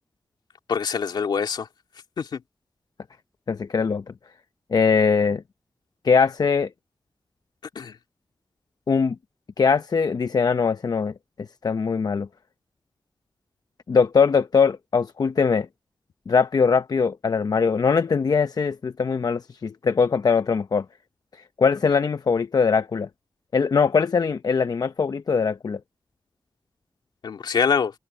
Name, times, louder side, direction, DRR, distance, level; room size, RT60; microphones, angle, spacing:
voice 1, 0.7-1.7 2.2-2.4 7.7-7.9 27.2-27.9, left 6 dB, 90° left, 2.9 m, -24 dB
voice 2, 3.5-4.0 4.7-5.4 6.0-6.7 8.9-9.2 9.6-11.1 11.6-12.3 13.9-15.7 16.3-20.8 21.6-23.1 23.5-25.8, left 5 dB, 60° left, 0.7 m, -21 dB
cardioid pair, 50°, 7 cm